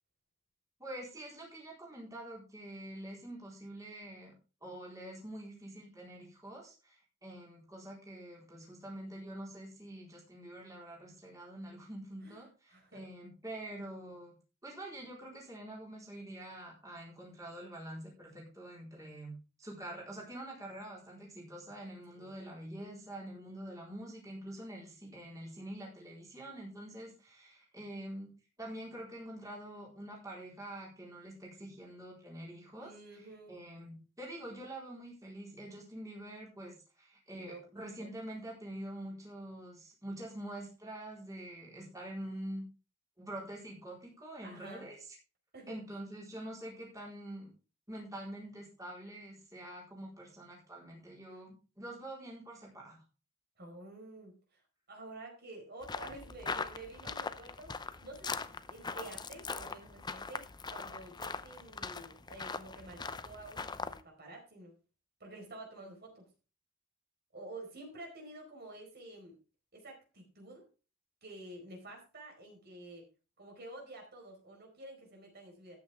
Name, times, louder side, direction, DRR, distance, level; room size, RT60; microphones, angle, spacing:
voice 1, 0.8-4.3 4.6-14.4 14.6-19.3 19.6-28.3 28.6-42.6 43.2-45.2 45.7-47.5 47.9-53.0, right 1 dB, 15° right, -3 dB, 4.2 m, -46 dB
voice 2, 12.7-13.0 22.1-22.4 32.8-33.6 37.3-37.8 44.4-44.9 45.5-45.8 51.3-51.4 53.6-54.6 54.9-57.7 58.0-64.7 65.2-66.3 67.3-69.4 69.7-70.7 71.2-73.1 73.4-75.8, right 2 dB, 50° right, 1 dB, 4.7 m, -50 dB
sound 1, 55.8-64.0, left 4 dB, 20° left, 0.6 m, -41 dB
13.5 x 9.3 x 3.6 m, 0.32 s
head